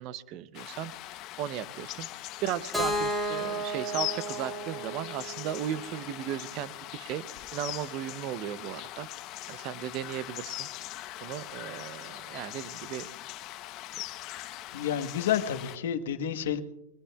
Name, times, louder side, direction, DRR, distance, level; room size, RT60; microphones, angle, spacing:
voice 1, 0.0-2.1 2.4-7.2 7.5-9.1 9.5-10.7 11.2-13.1, right 11 dB, 40° right, 16 dB, 0.6 m, -36 dB
sound 1, 0.5-15.8, left 15 dB, 35° left, 0.7 m, -41 dB
Keyboard (musical), 2.7-6.6, equal, 5° right, 1.8 m, -34 dB
voice 2, 14.7-16.6, left 9 dB, 75° left, 9 dB, 1.1 m, -30 dB
21.5 x 19.5 x 2.3 m, 0.98 s
supercardioid pair, 150°, 0 cm